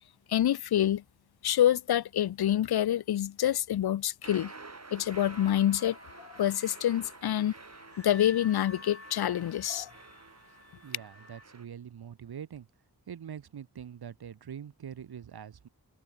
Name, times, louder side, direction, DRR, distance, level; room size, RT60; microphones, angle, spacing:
voice 1, 0.3-1.0 1.4-4.5 4.9-6.0 6.3-7.5 8.0-9.9, left 11 dB, 75° left, 0.5 m, -27 dB
sound 1, 4.2-11.7, right 3 dB, 40° right, 2.6 m, -50 dB
sound 2, 5.1-11.4, left 2 dB, 35° left, 3.9 m, -52 dB
voice 2, 10.8-12.7 13.1-15.7, right 8 dB, 75° right, 0.8 m, -44 dB
wide cardioid pair, 60°, 38 cm